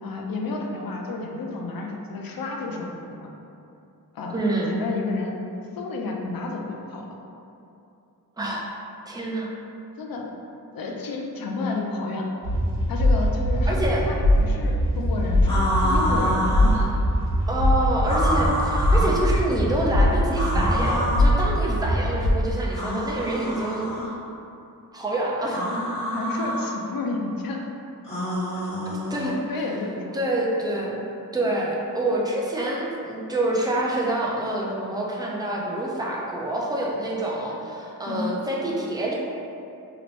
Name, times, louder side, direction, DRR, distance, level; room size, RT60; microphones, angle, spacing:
voice 1, 0.0-3.3 4.1-4.4 4.7-5.3 5.8-7.0 10.0-10.2 10.7-12.4 12.9-13.8 14.1-16.7 21.6-21.8 26.1-27.7 29.5-30.2 31.5-31.6 38.1-38.3, left 3 dB, 65° left, 0 dB, 0.5 m, -31 dB
voice 2, 4.3-4.7 8.4-8.6 9.1-9.5 13.7-14.0 17.5-23.9 24.9-25.6 28.9-29.4 30.1-31.0 31.3-39.1, right 1 dB, 10° right, -3 dB, 0.4 m, -27 dB
sound 1, 12.4-22.3, left 1 dB, 65° right, 0.8 m, -22 dB
sound 2, 15.4-16.9 18.0-19.2 20.3-21.3 22.7-24.1 25.4-26.7 28.0-29.4, equal, 15° left, 1.4 m, -27 dB
2.9 x 2.5 x 3.0 m, 2.7 s
wide cardioid pair, 115°, 38 cm